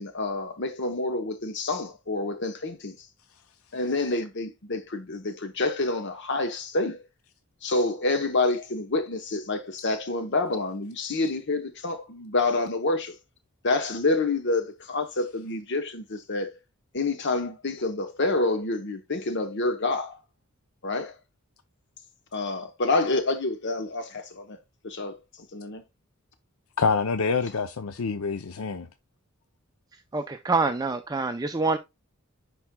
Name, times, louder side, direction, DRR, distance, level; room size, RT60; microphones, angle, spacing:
voice 1, 0.0-3.1 3.7-7.0 7.6-13.1 13.6-16.6 16.9-20.2 20.8-21.1 22.3-24.6 24.8-25.2 25.5-25.8, left 2 dB, 55° left, 0.9 m, -28 dB
voice 2, 26.8-28.9, left 5 dB, 75° left, 0.6 m, -26 dB
voice 3, 30.1-31.8, right 3 dB, 20° right, 0.5 m, -26 dB
10.5 x 4.2 x 2.2 m
head